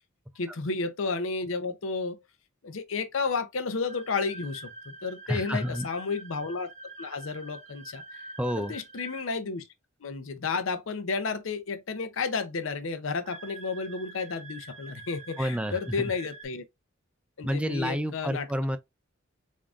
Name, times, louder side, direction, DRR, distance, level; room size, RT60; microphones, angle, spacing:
voice 1, 0.4-2.2 2.6-6.7 7.0-8.2 8.7-9.6 10.0-16.6 17.4-18.4, left 4 dB, 70° left, 0.6 m, -32 dB
sound 1, 3.9-9.3 13.2-16.5, right 3 dB, 35° right, 0.8 m, -46 dB
voice 2, 5.3-5.9 8.4-8.8 15.4-16.1 17.4-18.8, equal, 5° right, 0.3 m, -30 dB
3.7 x 3.6 x 2.4 m
head